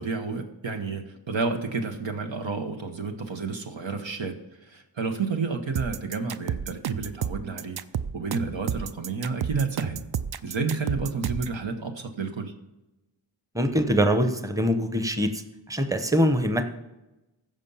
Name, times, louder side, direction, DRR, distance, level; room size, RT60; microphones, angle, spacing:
voice 1, 0.0-4.3 4.7-7.8 8.1-10.0 10.4-12.5, right 4 dB, 80° right, 5 dB, 1.3 m, -30 dB
sound 1, 5.8-11.6, right 8 dB, 60° right, 0.5 m, -31 dB
voice 2, 13.5-15.4 15.7-16.6, equal, 10° right, 7 dB, 0.9 m, -23 dB
15.0 x 5.4 x 5.6 m, 0.99 s
wide cardioid pair, 55°, 44 cm